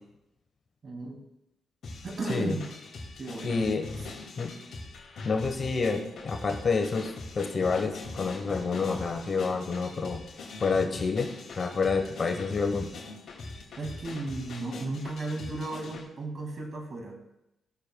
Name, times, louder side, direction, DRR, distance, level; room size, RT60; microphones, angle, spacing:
voice 1, 0.8-1.2 2.0-2.6 3.2-3.6 13.8-17.2, right 2 dB, 45° right, 3 dB, 2.2 m, -34 dB
sound 1, 1.8-16.0, left 3 dB, 65° left, 2.3 m, -42 dB
voice 2, 3.4-3.9 4.4-4.5 5.2-10.2 10.6-11.3 11.5-12.9, left 4 dB, 45° left, 4 dB, 1.2 m, -28 dB
18.0 x 6.8 x 2.3 m, 0.89 s
cardioid pair, 70°, 0 cm